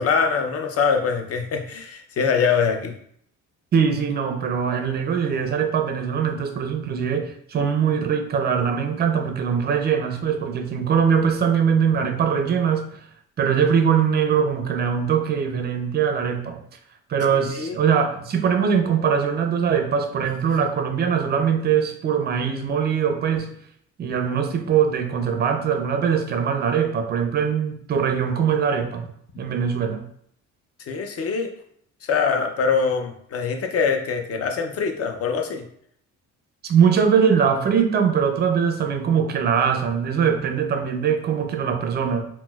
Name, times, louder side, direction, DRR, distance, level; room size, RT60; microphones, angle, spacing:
voice 1, 0.0-2.9 17.5-17.8 30.9-31.5 32.0-35.6, left 5 dB, 50° left, 5 dB, 0.5 m, -23 dB
voice 2, 3.7-13.0 13.4-16.6 17.1-23.5 24.0-29.1 29.4-30.0 36.6-42.3, right 7 dB, 35° right, 6 dB, 0.4 m, -22 dB
4.1 x 2.0 x 2.3 m, 0.65 s
cardioid pair, 115°, 31 cm